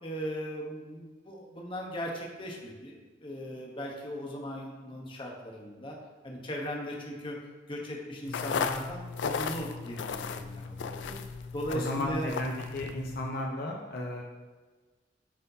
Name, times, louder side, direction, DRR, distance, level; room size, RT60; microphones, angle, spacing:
voice 1, 0.0-6.0 6.2-7.4 7.7-11.2 11.5-12.3, equal, 30° left, -1 dB, 1.0 m, -38 dB
sound 1, 8.3-13.3, left 5 dB, 80° left, 0.4 m, -35 dB
voice 2, 11.7-14.2, left 1 dB, 60° left, -1 dB, 0.8 m, -34 dB
9.3 x 4.3 x 2.7 m, 1.3 s
head